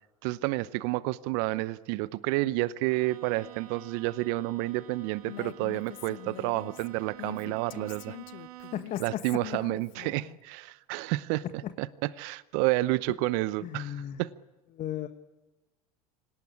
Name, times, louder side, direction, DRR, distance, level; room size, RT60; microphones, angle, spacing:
voice 1, 0.2-8.1 9.0-11.4 11.8-14.3, right 19 dB, 60° right, 0.8 m, -30 dB
Bowed string instrument, 2.8-9.1, right 15 dB, 75° right, 1.1 m, -50 dB
Female speech woman speaking, 5.3-10.4, left 20 dB, 65° left, 0.9 m, -44 dB
voice 2, 8.7-9.0 11.6-11.7 13.6-14.2 14.7-15.1, left 11 dB, 40° left, 1.6 m, -35 dB
25.0 x 18.5 x 9.8 m
hypercardioid pair, 85°, 19 cm